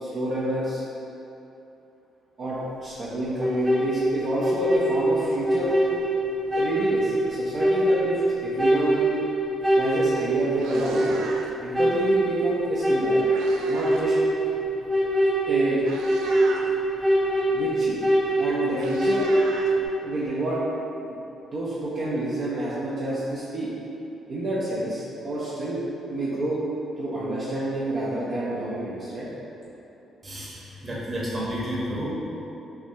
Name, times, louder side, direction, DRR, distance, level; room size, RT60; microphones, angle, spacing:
voice 1, 0.0-0.8 2.4-5.7 6.5-9.1 9.8-11.2 11.6-13.2 13.7-14.1 15.5-15.8 17.5-18.0 18.4-19.3 20.0-20.6 21.1-21.2 21.5-23.7 24.3-25.8 26.1-26.6 27.0-29.3, right 1 dB, 55° right, -8 dB, 0.7 m, -28 dB
sound 1, 3.4-19.9, right 1 dB, 5° right, 0.7 m, -24 dB
Meow, 9.9-10.1 10.4-11.7 12.8-14.1 14.4-14.7 15.4-15.5 15.8-16.7 18.0-18.1 18.4-20.3, right 3 dB, 85° right, 0.3 m, -39 dB
voice 2, 30.2-32.1, equal, 30° right, -6 dB, 1.1 m, -31 dB
5.7 x 2.2 x 2.8 m, 2.9 s
cardioid pair, 80°, 0 cm